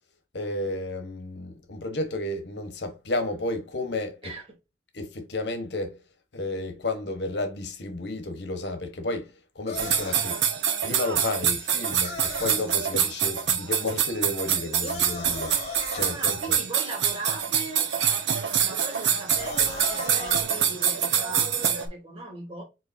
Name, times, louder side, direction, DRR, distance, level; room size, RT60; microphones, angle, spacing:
voice 1, 0.3-4.3 4.9-6.0 6.3-10.4 10.8-15.5 15.9-16.6, left 2 dB, 70° left, 1.0 m, -32 dB
sound 1, 9.7-10.3 12.0-12.7 14.8-16.2 19.3-20.4, left 3 dB, 40° left, 1.8 m, -36 dB
sound 2, 9.8-21.9, right 8 dB, 85° right, 0.7 m, -25 dB
voice 2, 15.9-17.9 18.6-22.6, right 2 dB, 35° right, 2.8 m, -39 dB
4.7 x 3.9 x 2.5 m
head